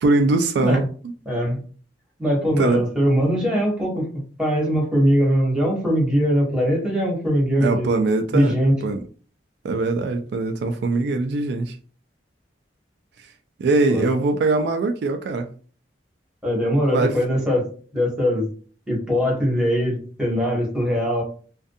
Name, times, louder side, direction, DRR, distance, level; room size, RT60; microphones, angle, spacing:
voice 1, 0.0-0.8 2.6-2.8 7.6-8.5 8.8-9.0 9.6-11.8 13.6-15.5 16.9-17.1, right 3 dB, 65° right, 0.3 m, -21 dB
voice 2, 1.3-1.6 2.2-4.1 4.4-7.9 8.3-8.7 13.9-14.0 16.4-18.5 18.9-21.2, equal, 5° right, 0.9 m, -21 dB
2.5 x 2.2 x 2.6 m
head